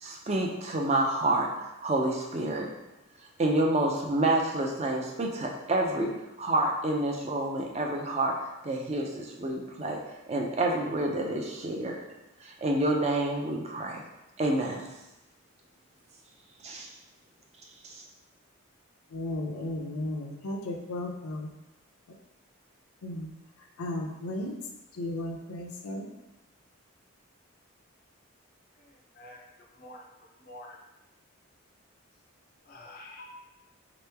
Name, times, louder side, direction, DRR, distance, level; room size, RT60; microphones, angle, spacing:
voice 1, 0.0-2.7 3.4-8.4 8.6-10.0 10.3-12.0 12.4-14.0 14.4-14.9 16.6-16.9 17.8-18.0, right 2 dB, 30° right, 0.4 m, -28 dB
voice 2, 19.1-21.5 23.0-23.3 23.8-24.6 24.9-26.1, left 1 dB, 90° left, 0.6 m, -34 dB
voice 3, 28.8-29.4 29.7-30.1 30.4-30.8 32.7-33.4, left 1 dB, 45° left, 0.5 m, -47 dB
3.8 x 3.0 x 3.4 m
head